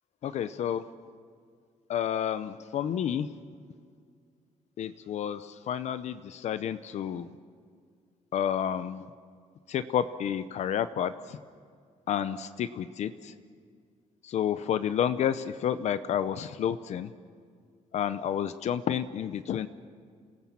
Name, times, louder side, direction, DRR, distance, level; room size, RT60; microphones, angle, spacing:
voice 1, 0.2-0.8 1.9-3.4 4.8-7.3 8.3-9.1 9.7-11.4 12.1-13.3 14.2-17.1 17.9-19.7, left 9 dB, 65° left, 13 dB, 0.7 m, -30 dB
28.0 x 18.5 x 7.4 m, 2.1 s
cardioid pair, 165°, 13 cm